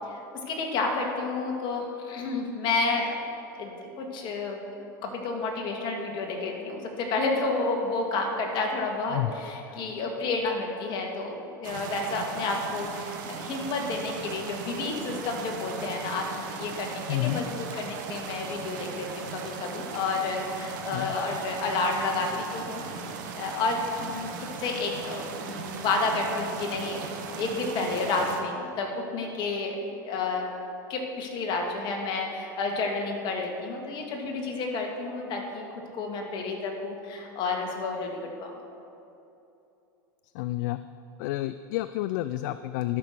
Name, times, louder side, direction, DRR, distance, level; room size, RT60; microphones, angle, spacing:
voice 1, 0.5-3.2 3.6-22.9 23.4-27.1 27.3-30.5 30.9-35.7 35.9-38.5, left 3 dB, 45° left, 1 dB, 2.1 m, -30 dB
sound 1, 11.6-28.4, right 5 dB, 70° right, 1.2 m, -38 dB
voice 2, 17.1-17.4 20.9-21.1 40.3-40.8 41.2-43.0, left 16 dB, 65° left, 12 dB, 0.4 m, -29 dB
12.0 x 6.1 x 6.7 m, 2.8 s
hypercardioid pair, 100°, 11 cm